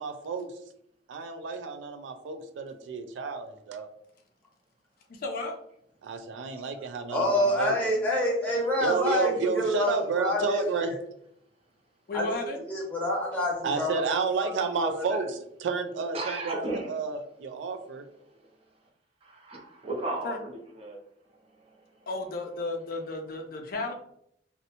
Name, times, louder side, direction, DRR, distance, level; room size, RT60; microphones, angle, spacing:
voice 1, 0.0-0.5 1.1-3.9 6.0-7.8 8.8-10.9 13.6-18.0, right 4 dB, 85° right, 0.3 m, -31 dB
voice 2, 5.1-5.5 12.1-12.6 20.2-20.4 22.1-23.9, left 3 dB, 50° left, 0.4 m, -33 dB
voice 3, 7.1-11.0 12.1-12.4 12.7-14.0 14.4-14.5 14.7-14.9 15.2-15.3, left 1 dB, 10° left, 0.7 m, -27 dB
voice 4, 16.1-16.9 17.6-17.7 18.2-18.9 19.2-21.0 21.3-22.1, right 2 dB, 30° right, 0.5 m, -36 dB
2.6 x 2.1 x 2.7 m
head